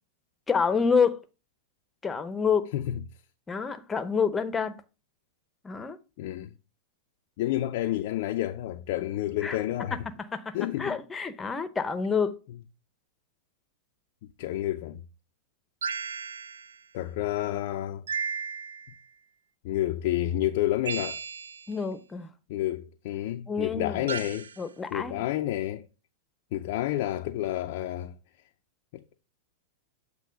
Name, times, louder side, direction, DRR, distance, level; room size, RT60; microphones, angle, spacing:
voice 1, 0.5-1.2 2.0-2.7 3.5-4.8 5.6-6.0 9.4-9.6 10.2-12.4 21.7-22.3 23.5-24.1 24.6-25.2, left 5 dB, 15° left, 0.8 m, -28 dB
voice 2, 6.2-6.5 7.4-10.0 10.5-11.0 14.4-15.0 16.9-18.0 19.6-21.2 22.5-24.5 24.9-25.9 26.5-28.1 28.9-29.0, left 14 dB, 60° left, 0.4 m, -29 dB
sound 1, 15.8-16.8 18.1-19.0 20.9-21.8 24.1-24.6, right 5 dB, 80° right, 0.4 m, -34 dB
7.6 x 3.0 x 5.1 m
hypercardioid pair, 105°, 0 cm